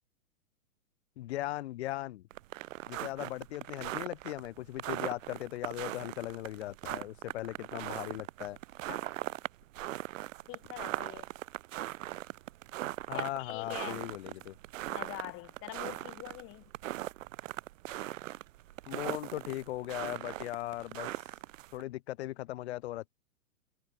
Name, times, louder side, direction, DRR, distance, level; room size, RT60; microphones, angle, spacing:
voice 1, 1.2-2.2 2.9-8.6 13.1-14.6 18.9-21.1 21.7-23.1, left 16 dB, 45° left, 0.9 m, -38 dB
sound 1, 2.3-21.8, right 15 dB, 60° right, 0.5 m, -40 dB
voice 2, 10.5-11.3 13.1-14.1 14.9-16.7, left 21 dB, 30° left, 3.5 m, -44 dB
hypercardioid pair, 145°, 45 cm